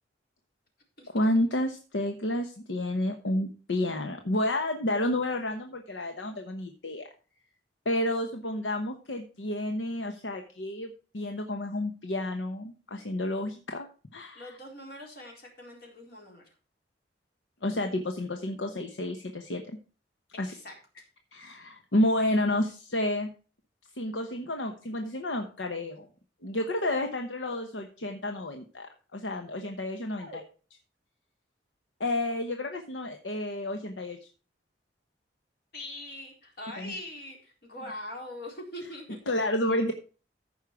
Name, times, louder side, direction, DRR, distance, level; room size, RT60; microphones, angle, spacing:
voice 1, 1.1-7.1 7.8-13.9 14.1-14.5 17.6-19.8 20.4-20.5 21.3-23.3 24.0-26.1 26.4-28.9 29.1-30.4 32.0-34.2 36.8-36.9 39.3-39.9, left 1 dB, 85° left, 5 dB, 1.0 m, -30 dB
voice 2, 14.3-16.4 20.5-20.7 30.2-30.4 35.7-39.2, left 1 dB, 60° left, 0 dB, 4.1 m, -42 dB
14.5 x 5.5 x 4.7 m, 0.36 s
head